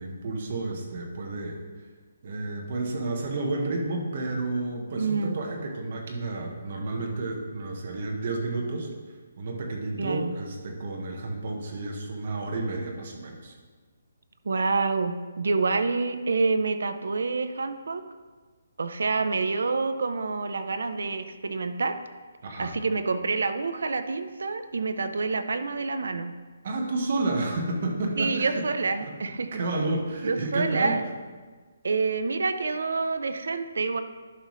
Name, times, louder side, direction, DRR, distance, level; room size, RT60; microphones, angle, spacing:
voice 1, 0.0-1.6 2.2-8.9 9.4-13.5 22.4-22.7 26.6-28.6 29.0-29.1 29.5-31.0, right 2 dB, 35° right, 1 dB, 1.1 m, -31 dB
voice 2, 4.9-5.4 10.0-10.3 14.4-18.0 18.8-22.0 22.6-26.3 28.2-29.6 30.2-31.0 31.8-34.0, right 4 dB, 70° right, 9 dB, 0.6 m, -27 dB
11.0 x 5.5 x 3.1 m, 1.4 s
hypercardioid pair, 180°, 0 cm